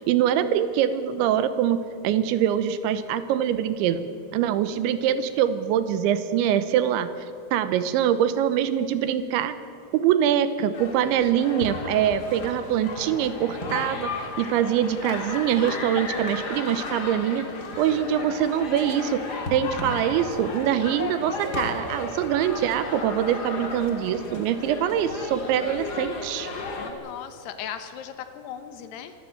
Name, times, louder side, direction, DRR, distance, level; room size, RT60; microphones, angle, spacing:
voice 1, 0.0-7.1 7.5-9.6 9.9-17.5 17.8-19.2 19.5-26.5, right 9 dB, 90° right, 12 dB, 3.3 m, -24 dB
sound 1, 10.7-26.9, left 3 dB, 45° left, 1.3 m, -34 dB
voice 2, 26.8-29.1, left 9 dB, 75° left, 9 dB, 2.8 m, -37 dB
24.5 x 13.5 x 9.3 m, 2.5 s
omnidirectional pair, 5.3 m